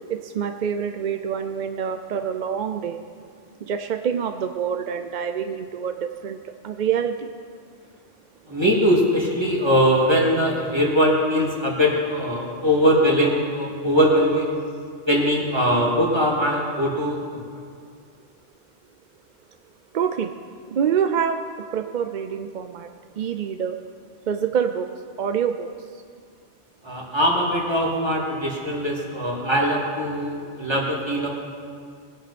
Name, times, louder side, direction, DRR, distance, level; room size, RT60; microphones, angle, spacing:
voice 1, 0.1-3.0 3.6-7.3 19.9-20.3 20.7-21.4 21.7-22.9 23.2-23.8 24.3-24.9 25.2-25.7, right 7 dB, 55° right, 7 dB, 0.5 m, -26 dB
voice 2, 8.5-14.5 15.1-17.4 26.8-31.3, equal, 20° right, -3 dB, 2.5 m, -21 dB
21.5 x 10.5 x 4.3 m, 2.1 s
omnidirectional pair, 1.2 m